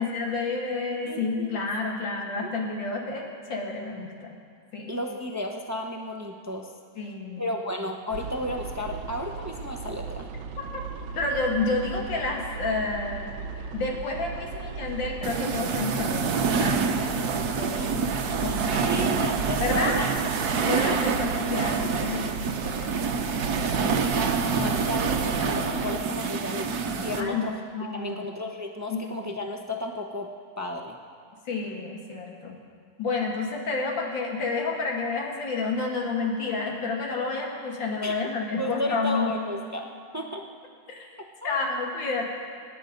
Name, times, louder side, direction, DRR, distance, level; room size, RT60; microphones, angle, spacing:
voice 1, 0.0-4.3 4.7-5.0 7.0-7.5 10.7-10.8 11.1-13.3 13.7-16.2 16.6-17.9 18.4-19.1 19.6-20.0 20.6-22.9 23.5-23.7 27.2-27.4 27.7-28.3 28.9-29.0 31.5-32.6 33.0-39.3 40.9-41.1 41.4-42.2, left 3 dB, 80° left, 0 dB, 2.7 m, -30 dB
voice 2, 1.0-1.6 4.9-6.7 7.4-10.3 17.8-18.0 18.8-20.1 20.6-21.1 23.8-26.7 26.9-27.6 27.9-30.3 30.6-31.0 38.0-38.1 38.6-39.9 40.1-40.4 41.4-41.6, left 1 dB, 20° right, 2 dB, 0.4 m, -33 dB
sound 1, 8.1-26.0, right 5 dB, 75° right, 1.4 m, -36 dB
sound 2, 15.2-27.2, right 5 dB, 60° right, 1.4 m, -27 dB
25.0 x 10.0 x 5.3 m, 2.2 s
omnidirectional pair, 2.0 m